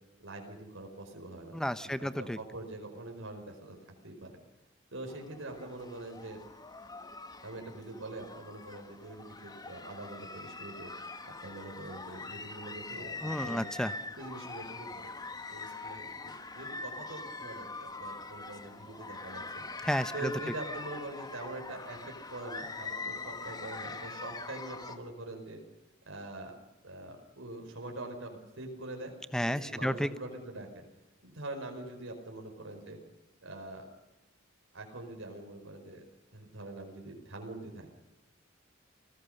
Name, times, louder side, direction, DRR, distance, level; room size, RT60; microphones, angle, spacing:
voice 1, 0.2-3.8 4.0-4.3 4.9-6.4 7.4-10.9 11.2-13.6 14.1-15.1 15.5-19.6 20.1-25.6 26.1-26.5 26.8-29.1 29.4-30.8 31.2-33.0 33.4-33.8 34.7-36.0 36.3-37.9, right 2 dB, 65° right, 2 dB, 5.0 m, -44 dB
voice 2, 1.5-2.4 13.2-13.9 19.8-20.3 29.3-30.1, equal, 5° left, 13 dB, 1.0 m, -32 dB
sound 1, 5.1-25.0, left 3 dB, 20° left, 1.5 m, -43 dB
29.5 x 18.5 x 6.6 m, 0.99 s
head